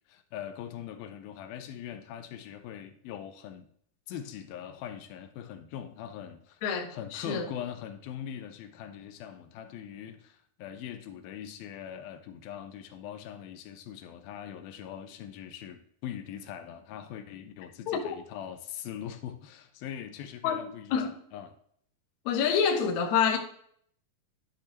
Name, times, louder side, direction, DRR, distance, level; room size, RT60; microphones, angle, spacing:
voice 1, 0.1-3.7 4.1-6.6 6.9-21.5, left 9 dB, 85° left, 2.6 m, -42 dB
voice 2, 6.6-7.5 17.9-18.2 20.4-20.6 20.9-21.1 22.3-23.4, left 6 dB, 65° left, 2.1 m, -27 dB
10.5 x 6.6 x 2.9 m
omnidirectional pair, 4.2 m